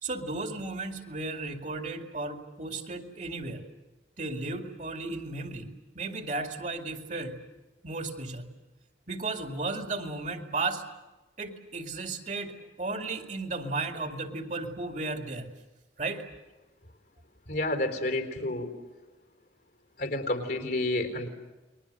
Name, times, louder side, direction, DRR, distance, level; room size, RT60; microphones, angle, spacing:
voice 1, 0.0-3.6 4.2-7.4 7.8-8.5 9.1-10.8 11.4-15.5 16.0-16.2, right 3 dB, 40° right, 4 dB, 2.4 m, -34 dB
voice 2, 17.5-18.7 20.0-21.3, left 2 dB, 55° left, 5 dB, 4.0 m, -30 dB
30.0 x 22.0 x 6.7 m, 1.2 s
head